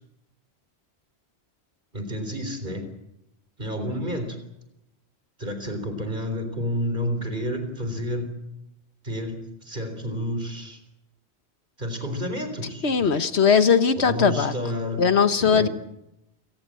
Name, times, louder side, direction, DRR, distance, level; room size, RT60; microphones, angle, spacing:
voice 1, 1.9-2.9 3.6-4.4 5.4-8.3 9.0-10.8 11.8-12.8 13.1-13.3 14.0-15.7, equal, 45° right, 7 dB, 4.1 m, -30 dB
voice 2, 12.8-14.5 15.0-15.7, left 6 dB, 75° left, 11 dB, 1.5 m, -19 dB
28.5 x 18.5 x 7.8 m, 0.89 s
omnidirectional pair, 1.1 m